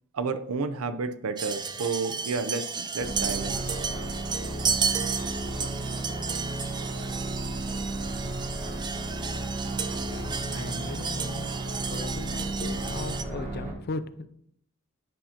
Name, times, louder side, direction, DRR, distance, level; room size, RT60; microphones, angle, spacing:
voice 1, 0.1-3.6, right 4 dB, 75° right, 10 dB, 0.6 m, -31 dB
sound 1, 1.4-13.2, right 6 dB, 20° right, 0.4 m, -33 dB
sound 2, 3.0-13.7, right 2 dB, 40° right, 1.3 m, -33 dB
voice 2, 10.0-11.5 11.9-14.3, left 3 dB, 50° left, 13 dB, 0.4 m, -38 dB
9.9 x 5.7 x 2.9 m, 0.70 s
head